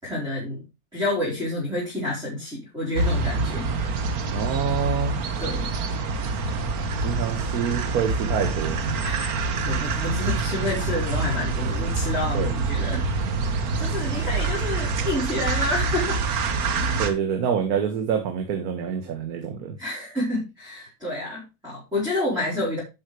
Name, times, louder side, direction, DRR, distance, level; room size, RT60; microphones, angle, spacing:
voice 1, 0.0-0.6 0.9-3.7 5.4-5.7 9.0-9.3 9.6-13.0 13.8-16.5 19.8-22.8, left 2 dB, 10° right, -7 dB, 4.3 m, -29 dB
sound 1, 3.0-17.1, right 3 dB, 55° right, 1.6 m, -26 dB
voice 2, 4.3-5.2 7.0-8.8 12.3-12.5 17.0-19.7, right 7 dB, 70° right, 5 dB, 1.7 m, -26 dB
12.0 x 5.6 x 3.3 m, 0.26 s
cardioid pair, 155°, 43 cm